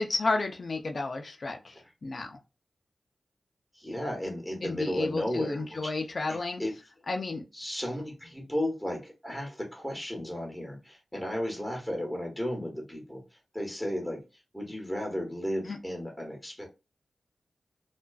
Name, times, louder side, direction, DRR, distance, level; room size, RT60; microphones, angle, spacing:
voice 1, 0.0-1.7 2.0-2.4 4.6-6.6 7.1-7.4 15.7-15.8, left 3 dB, 55° left, 0.5 m, -31 dB
voice 2, 3.8-5.9 6.3-6.8 7.5-13.2 13.5-14.2 14.5-16.7, equal, 5° left, 1.1 m, -34 dB
2.4 x 2.3 x 2.3 m
cardioid pair, 55°, 0 cm